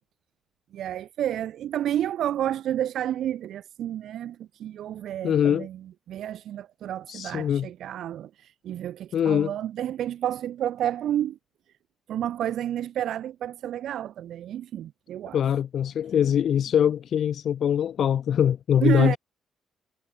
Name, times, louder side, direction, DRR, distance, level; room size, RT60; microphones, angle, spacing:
voice 1, 0.7-11.4 12.1-15.4 18.8-19.2, right 11 dB, 75° right, 0.9 m, -30 dB
voice 2, 5.2-5.7 7.1-7.7 9.1-9.5 15.3-19.2, left 9 dB, 65° left, 1.7 m, -23 dB
cardioid pair, 90°, 0 cm